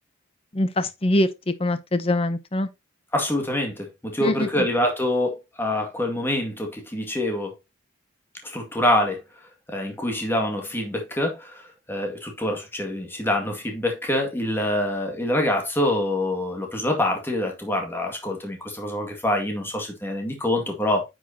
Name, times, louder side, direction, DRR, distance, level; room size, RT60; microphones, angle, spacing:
voice 1, 0.5-2.7 4.2-4.7, left 1 dB, 30° left, 0.7 m, -24 dB
voice 2, 3.1-7.5 8.4-9.2 9.7-11.6 11.9-21.1, left 1 dB, 10° left, 2.0 m, -25 dB
9.5 x 6.3 x 2.8 m
head